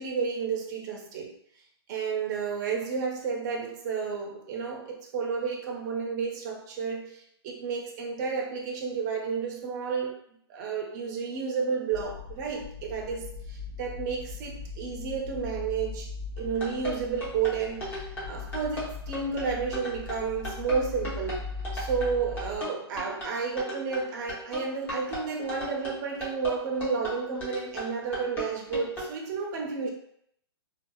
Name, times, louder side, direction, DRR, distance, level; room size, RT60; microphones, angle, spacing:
voice 1, 0.0-1.3 1.9-7.1 7.4-10.1 10.5-13.3 13.8-16.1 16.4-21.4 21.7-29.9, right 5 dB, 40° right, 0 dB, 0.7 m, -31 dB
sound 1, 11.9-22.6, left 4 dB, 50° left, 0.6 m, -40 dB
sound 2, 16.4-29.1, equal, 15° left, 1.0 m, -37 dB
2.6 x 2.3 x 2.3 m, 0.69 s
hypercardioid pair, 135°, 14 cm